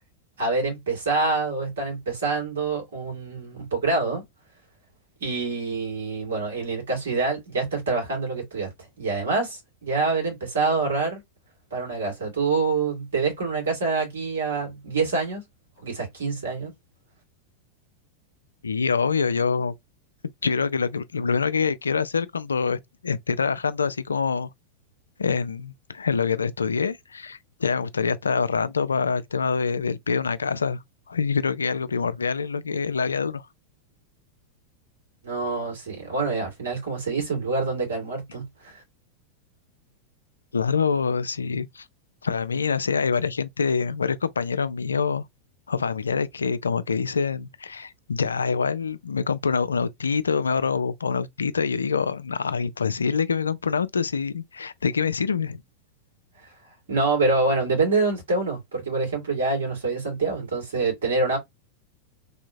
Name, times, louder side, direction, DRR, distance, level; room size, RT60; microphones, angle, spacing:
voice 1, 0.4-4.2 5.2-8.7 9.0-11.2 11.7-15.4 15.8-16.7 35.2-38.8 56.4-56.5 56.9-61.4, right 3 dB, 65° right, 2.2 m, -26 dB
voice 2, 18.6-19.7 20.4-24.5 25.2-30.8 31.1-33.4 40.5-41.9 42.2-45.2 45.7-55.6, left 5 dB, 75° left, 0.3 m, -25 dB
3.4 x 2.7 x 2.6 m
figure-of-eight pair, 90°, 0 cm